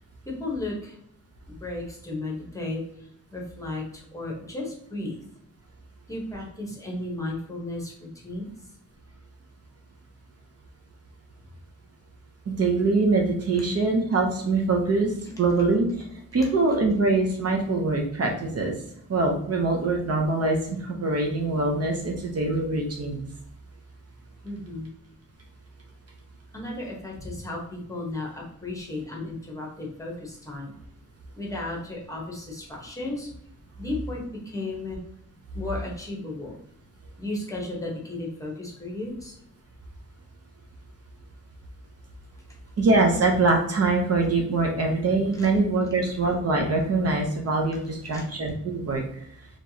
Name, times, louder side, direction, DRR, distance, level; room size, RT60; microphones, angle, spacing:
voice 1, 0.2-1.0 1.5-2.8 3.3-5.2 6.1-8.5 24.4-24.9 26.5-30.7 31.3-33.3 33.8-35.0 35.5-36.6 37.2-39.3 45.4-45.5 48.0-48.3, left 2 dB, 10° left, -3 dB, 1.0 m, -34 dB
voice 2, 12.5-16.0 16.3-18.7 19.1-23.2 42.8-49.0, right 3 dB, 50° right, 1 dB, 0.7 m, -23 dB
4.5 x 3.0 x 2.8 m, 0.69 s
wide cardioid pair, 145°, 31 cm